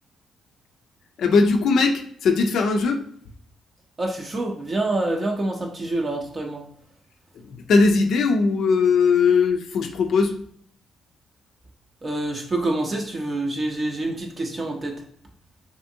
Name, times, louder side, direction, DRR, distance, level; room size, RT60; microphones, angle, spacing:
voice 1, 1.2-3.0 7.3-10.4, left 4 dB, 70° left, 4 dB, 0.3 m, -19 dB
voice 2, 4.0-6.7 12.0-15.0, right 2 dB, 35° right, 0 dB, 0.5 m, -26 dB
2.5 x 2.5 x 2.6 m, 0.64 s
supercardioid pair, 65°, 0 cm